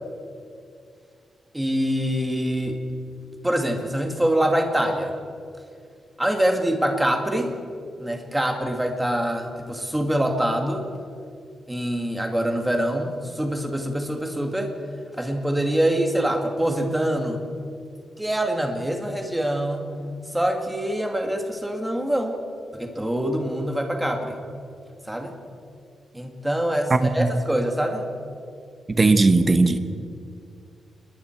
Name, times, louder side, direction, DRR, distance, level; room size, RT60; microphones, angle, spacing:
voice 1, 1.5-2.8 3.4-5.1 6.2-7.5 8.0-10.9 11.7-14.7 15.2-17.4 18.2-19.8 20.3-22.4 22.7-24.4 25.1-25.3 26.1-28.0, right 1 dB, 5° right, 3 dB, 2.0 m, -24 dB
voice 2, 26.9-27.3 29.0-29.8, right 3 dB, 20° right, 9 dB, 1.1 m, -18 dB
28.0 x 21.5 x 4.5 m, 2.3 s
wide cardioid pair, 175°, 0 cm